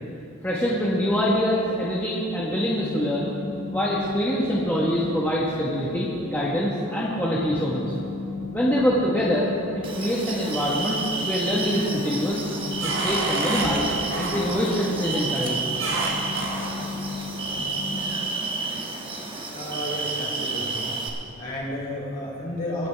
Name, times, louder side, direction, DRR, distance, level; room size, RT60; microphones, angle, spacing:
voice 1, 0.4-3.3 3.7-7.9 8.5-9.5 9.7-12.5 12.8-15.6, equal, 10° left, -7 dB, 1.3 m, -25 dB
sound 1, 0.6-18.1, left 3 dB, 75° left, 2.2 m, -37 dB
sound 2, 9.8-21.1, right 3 dB, 25° right, 1.2 m, -31 dB
sound 3, 10.5-11.0 11.5-11.9 12.3-14.9 15.8-16.9, right 2 dB, 55° right, 1.7 m, -30 dB
voice 2, 19.5-20.9 21.4-22.9, left 1 dB, 40° left, -4 dB, 3.4 m, -32 dB
23.0 x 9.1 x 3.5 m, 2.6 s
head